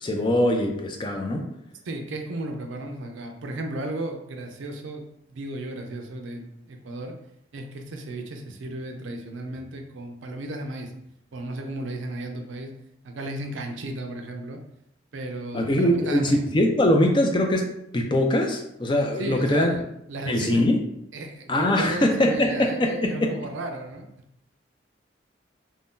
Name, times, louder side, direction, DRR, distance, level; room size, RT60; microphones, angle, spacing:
voice 1, 0.0-1.5 15.5-19.7 20.3-20.8 21.5-23.3, left 1 dB, 25° left, 2 dB, 0.3 m, -22 dB
voice 2, 1.8-7.2 7.5-10.9 11.3-12.7 13.0-14.6 15.1-16.4 19.2-20.7 21.1-24.1, right 2 dB, 80° right, 4 dB, 0.5 m, -34 dB
2.6 x 2.2 x 3.6 m, 0.77 s
head